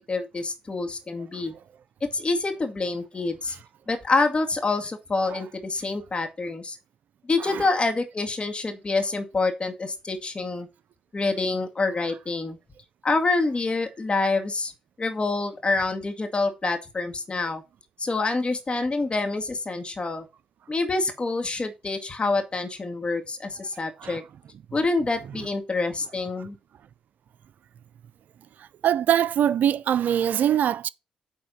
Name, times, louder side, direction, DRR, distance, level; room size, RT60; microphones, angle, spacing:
voice 1, 0.0-1.5 2.1-3.6 3.9-6.8 7.2-10.7 11.1-12.6 13.0-14.7 15.0-17.6 18.0-20.3 20.7-24.2 24.7-26.6, left 3 dB, 35° left, 2.1 m, -27 dB
voice 2, 28.8-30.9, right 10 dB, 65° right, 0.4 m, -23 dB
9.2 x 3.5 x 5.7 m
hypercardioid pair, 45°, 3 cm